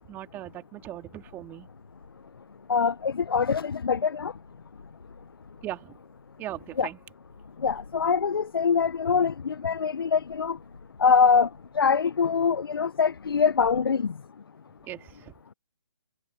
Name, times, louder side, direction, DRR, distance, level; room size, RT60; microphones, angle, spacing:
voice 1, 0.0-1.7 5.6-6.0 6.4-7.0 14.8-15.3, right 14 dB, 15° right, 2.4 m, -39 dB
sound 1, 1.1-13.8, left 3 dB, 85° left, 5.3 m, -53 dB
voice 2, 2.7-4.3 6.8-6.9 7.6-10.6 11.0-11.5 11.7-14.1, left 6 dB, 70° left, 1.0 m, -23 dB
hypercardioid pair, 150°, 13 cm